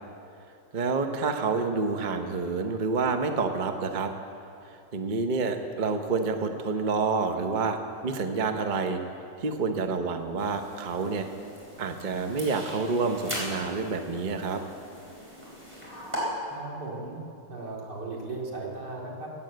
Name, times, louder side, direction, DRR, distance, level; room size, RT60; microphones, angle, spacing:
voice 1, 0.7-4.1 4.6-9.0 9.4-11.3 11.8-14.6, right 4 dB, 40° right, 6 dB, 0.7 m, -28 dB
sound 1, 10.4-16.2, equal, 5° right, 4.1 m, -40 dB
voice 2, 16.5-17.2 17.5-19.3, right 3 dB, 70° right, -3 dB, 3.0 m, -36 dB
16.0 x 9.4 x 7.9 m, 2.6 s
omnidirectional pair, 1.9 m